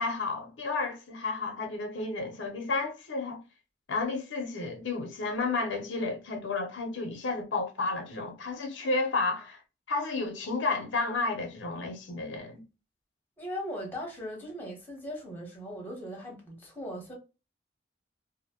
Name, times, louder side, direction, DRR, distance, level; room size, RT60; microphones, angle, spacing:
voice 1, 0.0-3.4 3.9-9.6 9.9-12.6, left 3 dB, 85° left, 0.6 m, -32 dB
voice 2, 13.4-17.1, equal, 10° left, 0.9 m, -39 dB
2.6 x 2.0 x 2.8 m
head